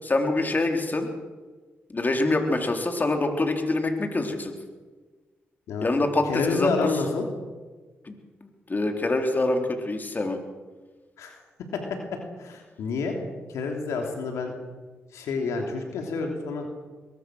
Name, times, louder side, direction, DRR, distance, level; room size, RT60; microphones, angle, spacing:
voice 1, 0.0-1.1 1.9-4.5 5.8-6.9 8.0-8.2 8.7-10.4, left 2 dB, 35° left, 4 dB, 3.8 m, -25 dB
voice 2, 6.3-7.3 11.2-11.3 11.7-11.8 12.4-13.2 13.5-14.5 15.1-16.7, left 4 dB, 80° left, 3 dB, 3.1 m, -28 dB
22.0 x 21.5 x 6.4 m, 1.4 s
supercardioid pair, 50°, 5 cm